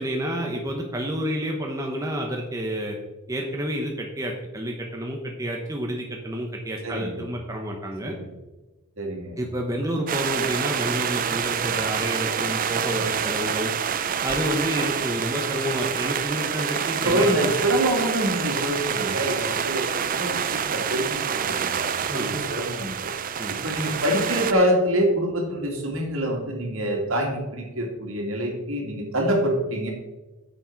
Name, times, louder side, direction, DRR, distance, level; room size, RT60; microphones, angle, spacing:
voice 1, 0.0-3.0 3.3-8.1 9.4-13.7 14.2-17.3 22.0-22.4 23.4-23.5, equal, 15° right, 1 dB, 1.0 m, -29 dB
voice 2, 6.8-7.2 8.0-8.3 9.0-9.4 17.0-23.1 23.5-29.9, equal, 65° right, 0 dB, 2.5 m, -26 dB
sound 1, 10.1-24.5, right 7 dB, 40° right, 0.4 m, -27 dB
9.7 x 7.3 x 4.7 m, 1.1 s
head